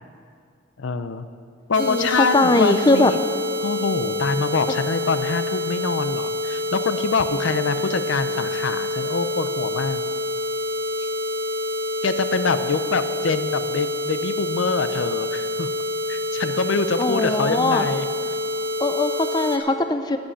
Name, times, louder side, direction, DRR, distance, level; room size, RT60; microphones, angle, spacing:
voice 1, 0.8-1.3 1.7-3.2 3.6-10.0 11.0-11.1 12.0-15.7 16.1-18.1, left 4 dB, 80° left, 11 dB, 0.6 m, -25 dB
sound 1, 1.7-19.6, left 1 dB, 45° right, 1.0 m, -27 dB
voice 2, 1.8-3.1 17.0-17.9 18.8-20.2, left 2 dB, 20° left, 8 dB, 0.4 m, -20 dB
15.5 x 5.3 x 9.8 m, 2.3 s
head